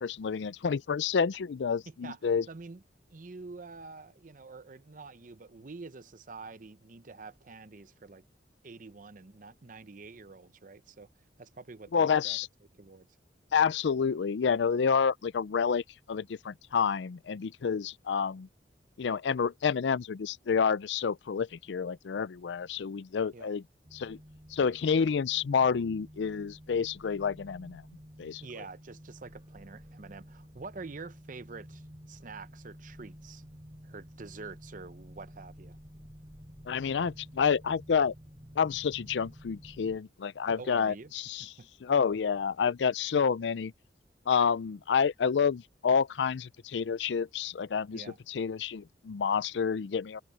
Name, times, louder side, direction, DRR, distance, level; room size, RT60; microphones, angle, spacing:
voice 1, 0.0-2.5 11.9-12.5 13.5-18.5 19.0-23.6 23.9-24.2 24.5-27.8 28.2-28.4 36.7-38.1 38.6-41.5 41.8-43.7 44.3-50.2, left 6 dB, 90° left, 0.4 m, -29 dB
voice 2, 1.9-2.2 2.5-2.8 3.1-8.2 8.6-11.1 11.4-12.4 12.8-13.1 23.3-23.5 28.4-33.4 33.8-35.8 40.5-41.1 41.4-41.7 47.9-48.2, right 4 dB, 50° right, 0.8 m, -46 dB
sound 1, 23.8-40.0, equal, 25° right, 5.4 m, -51 dB
open air
head